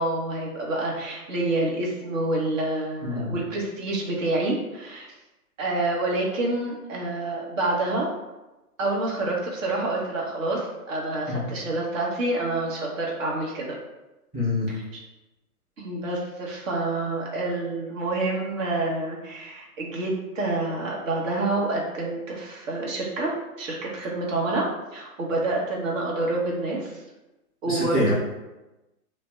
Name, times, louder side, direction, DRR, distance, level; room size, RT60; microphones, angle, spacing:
voice 1, 0.0-5.1 5.6-8.1 8.8-13.8 14.7-15.0 15.8-24.7 24.9-27.0 27.6-28.1, right 2 dB, 55° right, -3 dB, 1.0 m, -28 dB
voice 2, 3.0-3.3 11.3-11.4 14.3-14.7 27.7-28.1, left 2 dB, 10° right, -10 dB, 1.0 m, -25 dB
2.6 x 2.1 x 3.4 m, 1.0 s
hypercardioid pair, 140°, 46 cm